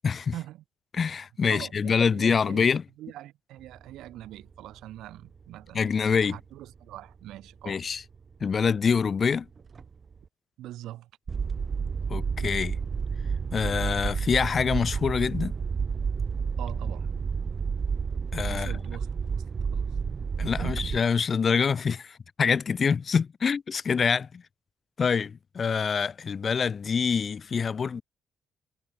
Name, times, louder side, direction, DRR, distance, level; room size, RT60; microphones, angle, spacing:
voice 1, 0.3-0.6 1.5-5.9 6.3-7.8 10.6-11.1 16.6-17.1 18.4-19.9 20.4-20.9, right 14 dB, 85° right, 2.7 m, -43 dB
voice 2, 0.9-2.8 5.7-6.4 7.6-8.0 8.4-9.5 12.1-12.8 13.5-15.5 18.3-18.8 20.4-24.4 25.0-28.0, left 6 dB, 45° left, 2.4 m, -25 dB
sound 1, 3.7-4.6 5.6-6.2 7.2-8.2 8.5-8.8 9.2-10.3 11.3-21.0, right 5 dB, 40° right, 2.6 m, -30 dB
cardioid pair, 90°, 0 cm